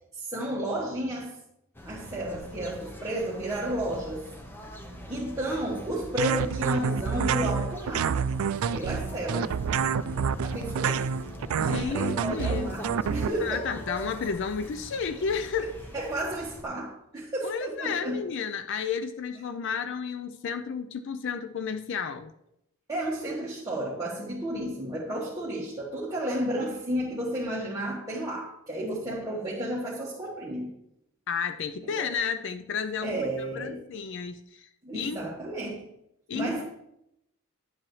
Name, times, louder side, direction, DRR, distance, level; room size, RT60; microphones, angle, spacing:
voice 1, 0.1-1.4 1.8-4.2 4.9-8.2 8.7-9.6 10.4-11.0 11.7-13.7 15.9-18.3 22.9-30.7 31.8-32.1 33.0-33.8 34.8-35.9 36.3-36.6, right 1 dB, 15° right, 1.3 m, -32 dB
sound 1, 1.7-16.6, equal, 10° left, 0.8 m, -43 dB
sound 2, 6.2-13.3, right 6 dB, 80° right, 0.3 m, -28 dB
sound 3, 9.1-14.7, left 1 dB, 80° left, 2.3 m, -45 dB
voice 2, 11.6-12.8 13.4-15.7 17.4-22.3 31.3-33.2 33.5-35.2 36.3-36.6, left 6 dB, 60° left, 0.4 m, -32 dB
10.5 x 7.5 x 3.1 m
head